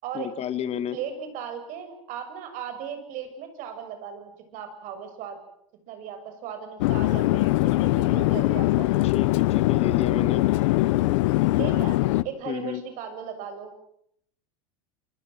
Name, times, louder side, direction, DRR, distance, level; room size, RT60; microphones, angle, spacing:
voice 1, 0.1-1.0 9.0-10.4 12.5-12.8, left 10 dB, 40° left, 12 dB, 2.1 m, -31 dB
voice 2, 0.9-5.4 5.9-8.9 11.6-13.7, right 8 dB, 55° right, 8 dB, 7.1 m, -37 dB
Chatter / Fixed-wing aircraft airplane, 6.8-12.2, left 18 dB, 70° left, 1.0 m, -22 dB
28.5 x 22.0 x 7.9 m, 0.71 s
supercardioid pair, 105°, 16 cm